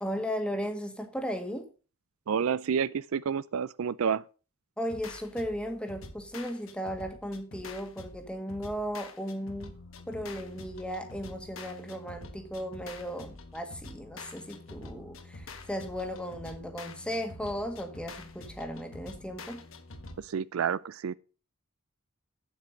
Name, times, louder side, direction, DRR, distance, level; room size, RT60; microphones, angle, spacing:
voice 1, 0.0-1.7 4.8-9.7 10.1-19.6, equal, 5° left, 1.7 m, -36 dB
voice 2, 2.3-4.2 20.2-21.1, right 7 dB, 70° right, 0.4 m, -29 dB
sound 1, 4.9-20.2, left 2 dB, 60° left, 1.5 m, -46 dB
8.3 x 7.9 x 6.4 m
head